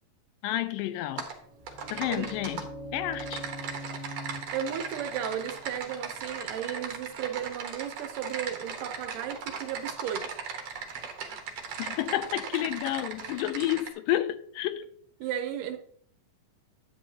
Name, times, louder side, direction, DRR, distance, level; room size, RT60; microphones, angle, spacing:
voice 1, 0.4-1.3 1.9-3.5 11.8-14.9, left 13 dB, 85° left, 2.2 m, -30 dB
Typing, 1.2-1.3 1.7-2.6 3.1-13.9, right 6 dB, 60° right, 1.9 m, -38 dB
sound 1, 1.4-7.1, equal, 25° left, 0.6 m, -44 dB
voice 2, 2.1-2.4 4.5-10.4 11.3-11.4 13.3-13.4 15.2-15.8, right 9 dB, 75° right, 2.2 m, -35 dB
10.0 x 8.3 x 2.8 m
omnidirectional pair, 4.0 m